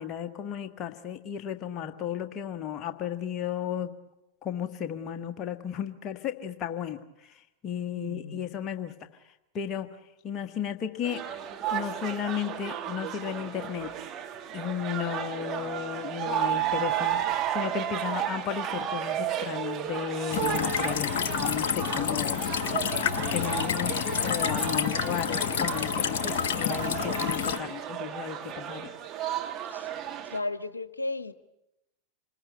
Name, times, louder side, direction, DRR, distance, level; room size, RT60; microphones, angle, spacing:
voice 1, 0.0-3.9 4.4-8.9 9.5-9.9 10.2-11.2 11.7-13.9 14.5-22.5 23.2-23.9 24.2-28.9, left 9 dB, 30° left, 6 dB, 1.5 m, -34 dB
voice 2, 7.9-8.5 29.7-29.9 30.3-31.3, left 2 dB, 80° left, 14 dB, 1.0 m, -34 dB
sound 1, 11.0-30.4, right 10 dB, 30° right, 2.1 m, -33 dB
sound 2, 20.3-27.6, left 8 dB, 55° left, 1.3 m, -29 dB
27.5 x 20.5 x 8.0 m, 0.89 s
figure-of-eight pair, 90°, 0 cm